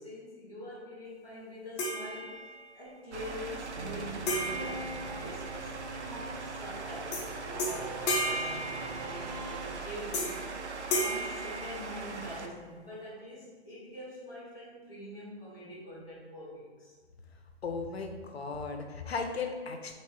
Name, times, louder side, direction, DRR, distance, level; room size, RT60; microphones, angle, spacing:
voice 1, 0.0-4.9 5.2-10.5 10.9-16.9, left 1 dB, 5° right, -19 dB, 0.4 m, -44 dB
sound 1, 1.8-2.8 4.3-5.8 7.1-7.3 7.6-9.4 10.1-10.5 10.9-12.3, equal, 25° left, 0.7 m, -34 dB
sound 2, 3.1-12.5, right 4 dB, 90° right, 0.6 m, -40 dB
sound 3, 3.8-10.5, right 2 dB, 40° right, 0.7 m, -44 dB
voice 2, 17.6-19.9, left 4 dB, 65° left, 4 dB, 0.7 m, -36 dB
3.2 x 3.2 x 4.5 m, 1.4 s
figure-of-eight pair, 135°, 34 cm